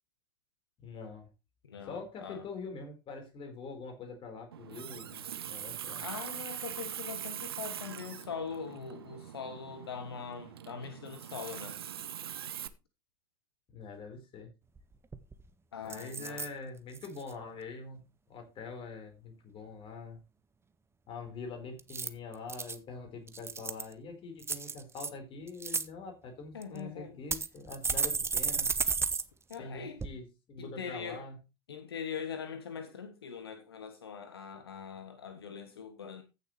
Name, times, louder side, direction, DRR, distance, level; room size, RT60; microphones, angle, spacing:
voice 1, 0.8-1.3 1.9-6.1 13.7-14.5 15.8-20.2 21.1-28.7 29.6-31.4, left 4 dB, 45° left, 4.3 m, -44 dB
voice 2, 1.7-2.4 6.0-11.8 15.7-16.4 26.5-27.2 29.5-30.0 30.6-31.2 31.7-36.2, left 6 dB, 85° left, 1.0 m, -42 dB
Water tap faucet, 4.5-12.7, right 10 dB, 85° right, 0.7 m, -42 dB
sound 1, 14.8-14.9 15.1-15.5 15.9-16.5 16.9-17.3 21.8-22.8 23.3-23.9 24.4-25.1 25.5-25.8 26.6-26.7 27.3-29.2 29.5-29.6 30.0-30.1, right 5 dB, 20° right, 1.0 m, -33 dB
15.0 x 6.9 x 3.2 m
hypercardioid pair, 70°, 13 cm